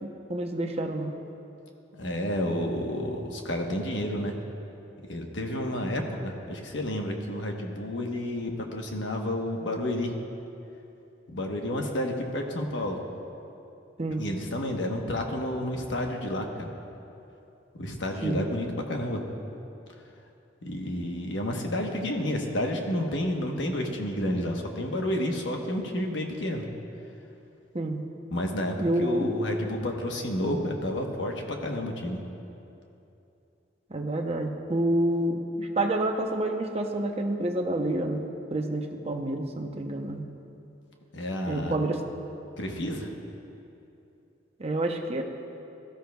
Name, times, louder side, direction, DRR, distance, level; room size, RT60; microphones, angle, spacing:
voice 1, 0.0-1.1 14.0-14.2 18.2-18.4 27.7-28.0 28.8-29.3 33.9-38.2 38.5-40.2 41.5-42.0 44.6-45.2, right 1 dB, 35° right, 3 dB, 0.8 m, -28 dB
voice 2, 1.9-4.3 5.0-10.1 11.3-13.0 14.2-16.7 17.8-19.2 20.6-26.6 28.3-32.2 41.1-41.7 42.6-43.1, left 1 dB, 75° left, 2 dB, 1.2 m, -30 dB
17.5 x 13.0 x 2.3 m, 2.8 s
head